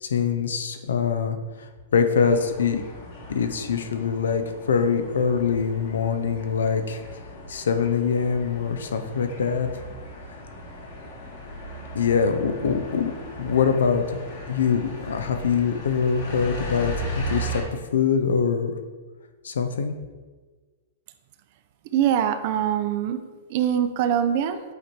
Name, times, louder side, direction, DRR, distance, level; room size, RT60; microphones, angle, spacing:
voice 1, 0.0-1.4 1.9-2.8 3.3-4.4 4.7-7.0 7.5-9.7 11.9-14.2 14.5-17.6 17.9-18.8 19.4-19.9, left 6 dB, 80° left, 8 dB, 0.6 m, -23 dB
sound 1, 2.2-17.6, equal, 60° left, 1.7 m, -37 dB
voice 2, 21.9-23.2 23.5-24.6, right 9 dB, 50° right, 9 dB, 0.5 m, -23 dB
8.1 x 3.0 x 4.3 m, 1.4 s
hypercardioid pair, 125°, 0 cm